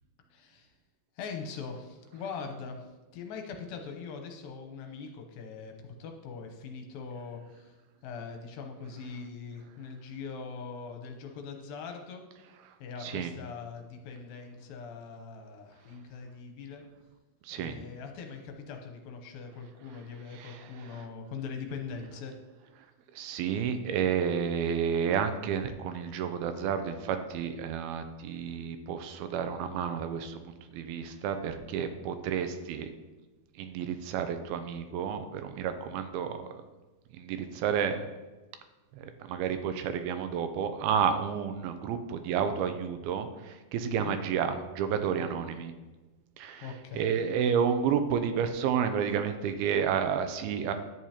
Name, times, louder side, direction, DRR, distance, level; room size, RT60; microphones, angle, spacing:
voice 1, 0.3-0.7 1.2-7.7 8.0-12.2 12.8-16.8 17.5-22.3 43.8-44.1 46.6-47.2, left 5 dB, 75° left, 4 dB, 2.4 m, -42 dB
voice 2, 17.4-17.8 20.4-20.6 21.0-21.1 23.2-32.9 33.6-36.6 37.1-38.0 38.9-45.7 46.4-46.7 46.9-50.7, right 7 dB, 80° right, 8 dB, 2.4 m, -31 dB
11.0 x 9.0 x 2.9 m, 1.2 s
omnidirectional pair, 4.5 m